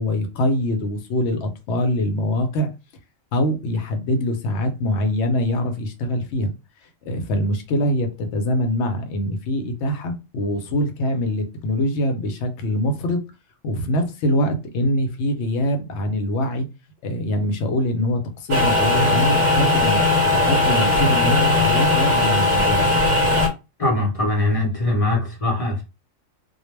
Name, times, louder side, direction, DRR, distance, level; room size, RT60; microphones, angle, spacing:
voice 1, 0.0-2.7 3.3-6.5 7.1-13.2 13.6-16.7 17.0-20.0 20.3-23.1, left 1 dB, 70° left, 0.8 m, -23 dB
sound 1, 18.5-23.5, left 2 dB, 45° right, 0.7 m, -18 dB
voice 2, 23.8-25.8, left 2 dB, 35° left, 0.6 m, -21 dB
2.2 x 2.1 x 3.1 m
omnidirectional pair, 1.3 m